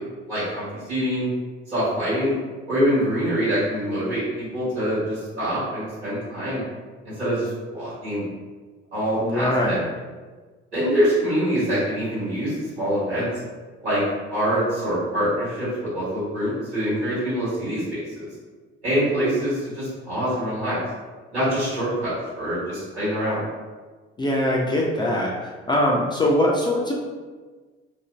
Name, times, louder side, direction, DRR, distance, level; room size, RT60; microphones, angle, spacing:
voice 1, 0.3-1.3 1.7-2.3 2.7-6.6 7.2-8.3 8.9-9.8 10.7-13.3 13.8-14.0 14.3-18.3 18.8-20.8 21.3-23.4, equal, 80° right, -11 dB, 1.3 m, -25 dB
voice 2, 9.2-9.9 24.2-26.9, left 1 dB, 15° left, -3 dB, 0.3 m, -22 dB
2.5 x 2.1 x 3.1 m, 1.4 s
figure-of-eight pair, 50°, 33 cm